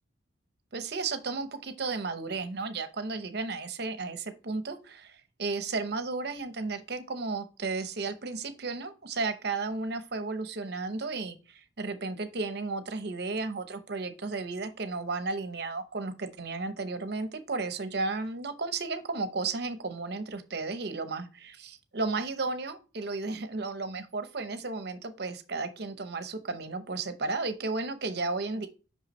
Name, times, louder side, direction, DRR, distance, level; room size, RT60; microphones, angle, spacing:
voice 1, 0.7-28.7, right 3 dB, 60° right, 10 dB, 0.8 m, -34 dB
5.6 x 5.6 x 3.1 m, 0.32 s
head